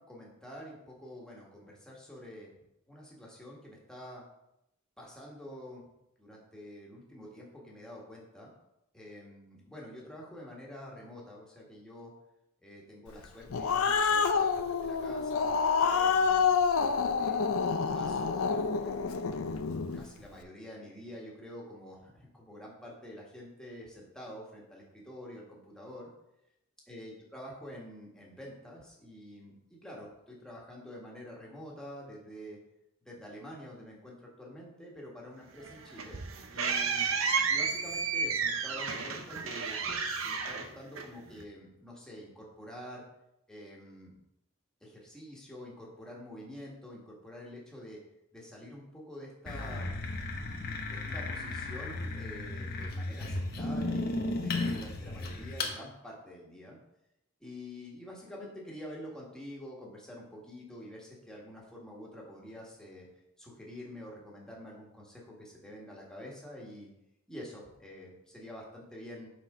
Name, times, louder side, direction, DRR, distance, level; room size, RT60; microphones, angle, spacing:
voice 1, 0.0-2.5 2.9-4.2 5.0-5.8 6.2-8.5 8.9-12.1 12.6-16.4 17.2-18.5 18.7-19.0 19.6-26.1 26.9-32.6 33.0-36.2 36.5-37.1 37.5-39.8 40.2-43.0 43.5-44.1 44.8-48.0 48.3-50.0 50.8-56.8 57.4-63.1 63.4-66.9 67.3-69.3, left 1 dB, 5° left, -4 dB, 1.5 m, -47 dB
Growling, 13.2-20.0, left 5 dB, 90° left, 0.5 m, -28 dB
sound 1, 35.6-41.4, right 5 dB, 80° right, 0.7 m, -32 dB
sound 2, 49.5-55.8, left 2 dB, 50° left, 0.9 m, -35 dB
6.1 x 4.2 x 4.9 m, 0.84 s
head